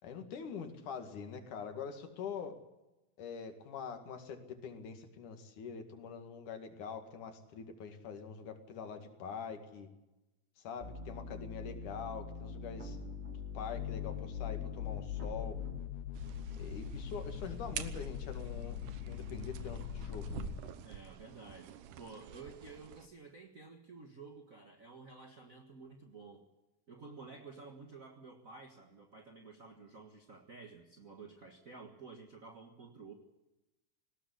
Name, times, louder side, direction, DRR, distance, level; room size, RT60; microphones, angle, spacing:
voice 1, 0.0-2.6 3.2-9.9 10.6-15.6 16.6-18.8 19.1-20.8, left 6 dB, 60° left, 6 dB, 3.5 m, -44 dB
sound 1, 10.8-15.8, left 4 dB, 20° right, 2.2 m, -43 dB
sound 2, 13.7-20.6, left 9 dB, 80° left, 3.1 m, -42 dB
sound 3, 16.1-23.1, right 10 dB, 70° right, 2.3 m, -48 dB
voice 2, 20.8-26.5 26.9-33.1, right 4 dB, 45° right, 3 dB, 1.0 m, -52 dB
19.5 x 17.5 x 8.3 m, 0.99 s
omnidirectional pair, 4.2 m